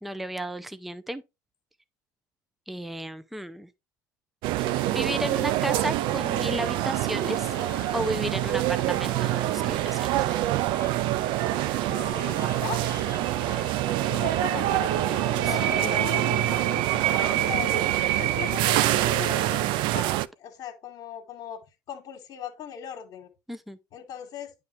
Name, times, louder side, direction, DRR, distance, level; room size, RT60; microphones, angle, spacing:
voice 1, 0.0-1.2 2.7-3.7 4.9-7.5 7.9-10.1 15.5-16.0 23.5-23.8, right 1 dB, ahead, 0.6 m, -33 dB
sound 1, 4.4-20.3, right 15 dB, 50° right, 0.4 m, -25 dB
sound 2, 4.6-19.7, left 6 dB, 85° left, 0.7 m, -40 dB
voice 2, 11.7-12.9 13.8-17.9 18.1-21.6 21.9-23.3 23.9-24.5, left 9 dB, 45° left, 1.4 m, -39 dB
9.5 x 3.3 x 4.5 m
figure-of-eight pair, 75°, 10 cm